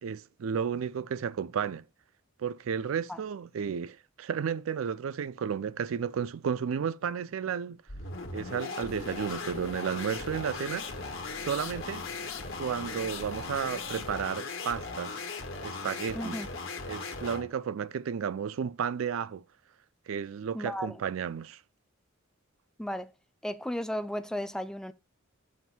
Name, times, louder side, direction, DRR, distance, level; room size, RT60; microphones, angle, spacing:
voice 1, 0.0-1.8 2.4-7.8 8.3-10.9 11.4-12.0 12.6-15.2 15.6-16.4 16.9-19.4 20.1-21.6, right 7 dB, 75° right, 0.4 m, -33 dB
sound 1, 7.9-17.5, left 3 dB, 70° left, 1.3 m, -38 dB
sound 2, 8.9-14.1, left 4 dB, 85° left, 0.9 m, -49 dB
voice 2, 16.1-16.5 20.5-21.0 22.8-23.1 23.4-24.9, equal, 5° left, 0.4 m, -34 dB
7.3 x 3.0 x 5.8 m
head